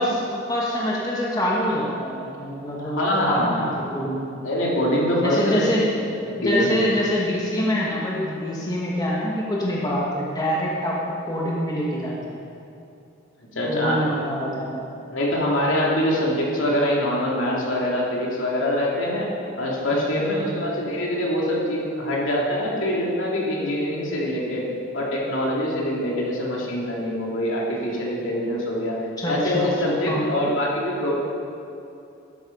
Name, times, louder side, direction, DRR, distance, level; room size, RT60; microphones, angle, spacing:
voice 1, 0.0-4.2 5.2-5.9 6.4-12.4 13.7-14.8 19.9-20.6 29.2-30.5, equal, 20° left, -4 dB, 1.4 m, -25 dB
voice 2, 2.8-3.6 4.4-5.8 6.2-6.7 13.5-14.0 15.1-19.3 19.6-24.7 24.9-28.9 29.3-31.1, left 1 dB, 70° left, -3 dB, 2.8 m, -24 dB
12.5 x 11.5 x 5.4 m, 2.7 s
head